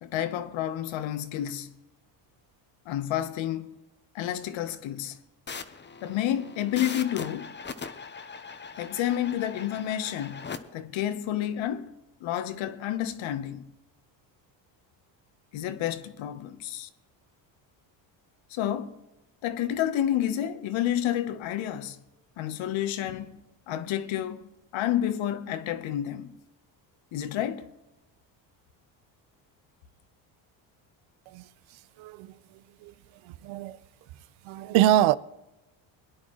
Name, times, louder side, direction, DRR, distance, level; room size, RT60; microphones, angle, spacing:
voice 1, 0.0-1.7 2.9-3.7 4.1-5.2 6.0-7.5 8.8-11.9 12.2-13.7 15.5-16.9 18.5-19.0 19.4-22.0 22.4-23.3 23.7-24.4 24.7-26.3 27.1-27.7, left 11 dB, 70° left, 1.1 m, -30 dB
sound 1, 5.5-10.6, left 5 dB, 25° left, 0.9 m, -40 dB
voice 2, 32.0-32.4 32.8-32.9 33.2-33.8 34.4-35.2, right 13 dB, 75° right, 0.7 m, -24 dB
22.0 x 10.5 x 3.1 m
cardioid pair, 110°, 47 cm